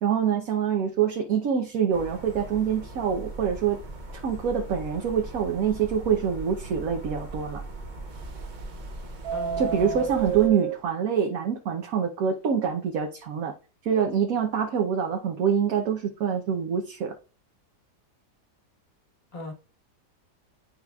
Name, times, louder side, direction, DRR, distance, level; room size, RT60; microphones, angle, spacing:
voice 1, 0.0-3.8 4.1-7.6 9.6-13.5 13.8-17.2, right 7 dB, 60° right, 1.2 m, -25 dB
sound 1, 1.9-10.5, right 2 dB, 35° right, 0.9 m, -40 dB
Subway metro underground, 3.8-4.2 4.6-4.7 5.0-5.1 5.6-5.7 8.1-8.8 9.1-10.8, right 10 dB, 90° right, 0.6 m, -31 dB
voice 2, 9.3-10.1 19.3-19.5, left 2 dB, 35° left, 1.6 m, -37 dB
10.5 x 4.8 x 2.4 m
omnidirectional pair, 1.8 m